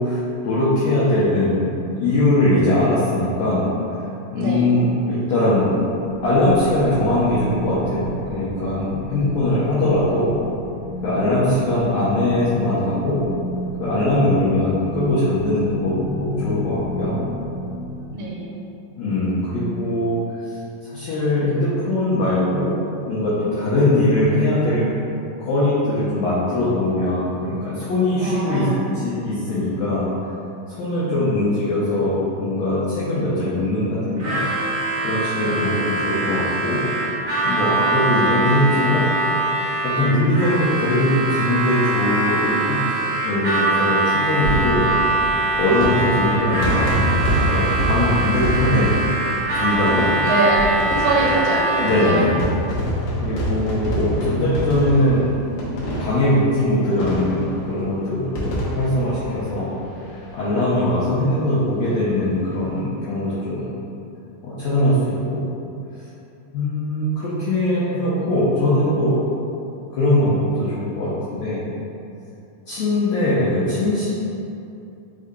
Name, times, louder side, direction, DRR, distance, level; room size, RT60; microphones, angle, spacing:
voice 1, 0.0-4.0 4.3-5.7 6.2-10.3 11.0-13.2 13.8-17.2 19.0-20.2 20.8-22.7 23.1-24.9 25.4-28.7 28.9-30.1 30.7-34.4 35.0-36.8 37.4-39.1 39.8-44.9 45.6-46.9 47.3-48.9 49.5-50.2 51.8-52.3 53.2-55.3 55.8-59.7 60.1-63.7 64.4-65.4 66.5-69.1 69.9-71.6 72.7-74.1, left 1 dB, 90° left, -10 dB, 1.5 m, -21 dB
voice 2, 4.4-4.7 18.1-18.5 28.2-28.8 35.4-35.7 50.2-50.6 51.0-52.2 53.9-54.3, right 3 dB, 85° right, -5 dB, 2.4 m, -24 dB
sound 1, 5.4-18.1, equal, 55° left, 1.8 m, -32 dB
Harmonica, 34.2-52.4, right 2 dB, 65° right, 1.5 m, -23 dB
sound 2, 44.3-60.3 60.6-60.7 60.9-61.0 62.3-62.6, equal, 70° left, 2.0 m, -26 dB
5.0 x 3.7 x 2.2 m, 2.7 s
omnidirectional pair, 3.9 m